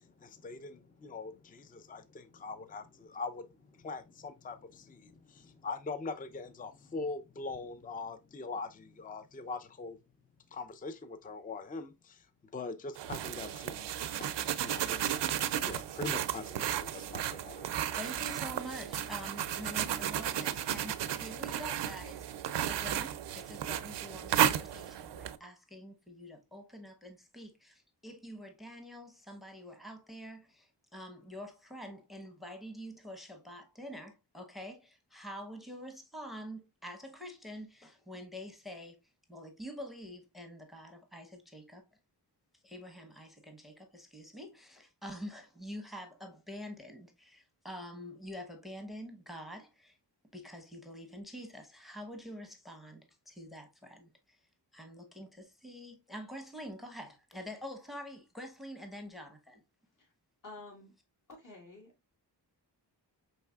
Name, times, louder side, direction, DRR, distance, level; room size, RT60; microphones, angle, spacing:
voice 1, 0.0-10.0 10.5-12.3 12.5-13.8 14.6-15.2 15.6-17.7, left 3 dB, 20° left, 0.5 m, -42 dB
sound 1, 13.0-25.4, right 10 dB, 80° right, 0.5 m, -34 dB
voice 2, 17.9-39.0 39.3-41.8 42.6-50.0 50.3-54.4 54.7-59.6, equal, ahead, 0.8 m, -46 dB
voice 3, 60.4-60.9 61.3-61.9, left 2 dB, 50° left, 2.1 m, -50 dB
5.3 x 3.2 x 2.3 m
cardioid pair, 70°, 42 cm